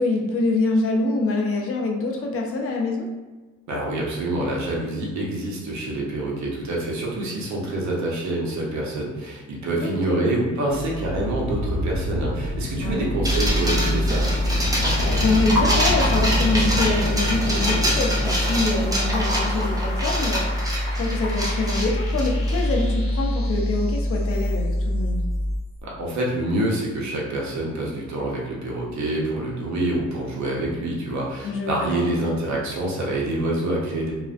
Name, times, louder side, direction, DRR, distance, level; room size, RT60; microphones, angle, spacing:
voice 1, 0.0-3.1 9.8-10.2 12.8-13.2 15.0-25.2 31.4-32.3, left 3 dB, 50° left, 0 dB, 0.5 m, -25 dB
voice 2, 3.7-14.2 25.8-34.1, right 1 dB, 65° right, -3 dB, 0.8 m, -26 dB
sound 1, 10.7-25.6, left 1 dB, 20° left, 0.8 m, -25 dB
sound 2, 11.0-24.9, left 1 dB, 75° left, 0.9 m, -32 dB
sound 3, 13.2-22.8, equal, 10° right, 0.5 m, -26 dB
2.4 x 2.1 x 2.4 m, 1.2 s
cardioid pair, 90°, 30 cm